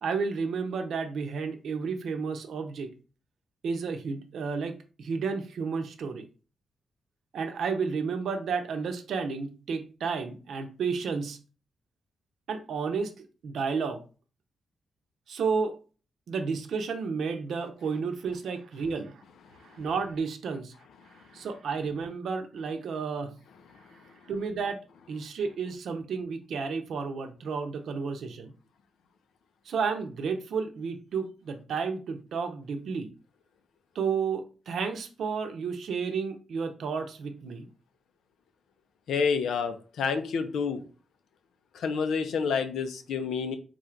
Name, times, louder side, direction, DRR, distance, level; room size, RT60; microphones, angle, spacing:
voice 1, 0.0-2.9 3.6-4.7 5.0-6.3 7.3-11.4 12.5-13.1 13.4-14.0 15.3-15.7 16.3-19.2 19.6-20.7 21.3-23.3 24.3-24.8 25.1-28.5 29.7-33.1 33.9-37.7, right 5 dB, 70° right, 6 dB, 0.7 m, -31 dB
voice 2, 39.1-40.8 41.7-43.6, left 5 dB, 85° left, 8 dB, 0.6 m, -28 dB
3.9 x 2.5 x 4.4 m, 0.35 s
wide cardioid pair, 160°, 0 cm